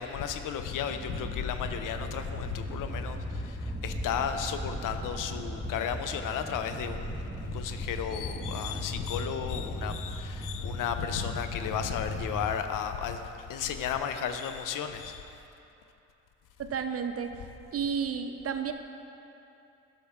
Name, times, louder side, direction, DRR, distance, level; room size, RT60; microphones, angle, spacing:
voice 1, 0.0-13.2 13.5-15.3, left 8 dB, 70° left, 8 dB, 0.6 m, -33 dB
sound 1, 0.8-12.6, equal, 5° right, 1.4 m, -38 dB
voice 2, 16.6-17.5 17.7-18.7, right 6 dB, 45° right, 7 dB, 0.6 m, -32 dB
9.9 x 6.0 x 3.6 m, 2.8 s
supercardioid pair, 65°, 34 cm